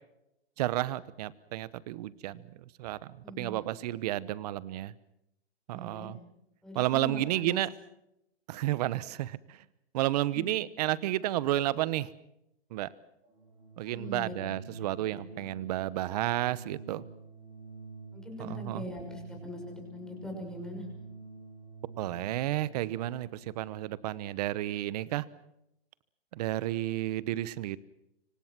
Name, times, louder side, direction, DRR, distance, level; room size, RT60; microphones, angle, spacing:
voice 1, 0.6-2.4 2.8-4.9 5.7-6.2 6.7-7.7 8.5-9.6 9.9-12.1 12.7-12.9 13.8-17.0 18.4-18.9 22.0-25.2 26.3-27.8, right 14 dB, 40° right, 19 dB, 1.0 m, -31 dB
voice 2, 3.2-3.6 5.7-6.1 6.6-7.6 10.3-10.4 13.9-14.3 14.7-14.8 15.1-15.3 18.1-20.8, left 1 dB, ahead, 1 dB, 5.9 m, -42 dB
Organ, 13.2-23.5, right 4 dB, 20° right, 7.7 m, -48 dB
25.5 x 25.0 x 6.1 m, 0.84 s
hypercardioid pair, 155°, 32 cm